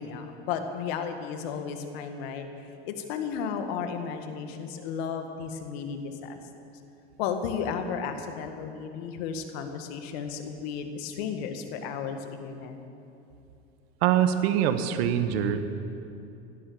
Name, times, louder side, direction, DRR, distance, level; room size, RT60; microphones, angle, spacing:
voice 1, 0.0-6.4 7.2-12.8, left 6 dB, 70° left, 6 dB, 1.8 m, -34 dB
voice 2, 14.0-15.6, right 10 dB, 70° right, 9 dB, 1.3 m, -24 dB
17.5 x 12.5 x 6.5 m, 2.8 s
hypercardioid pair, 95°, 32 cm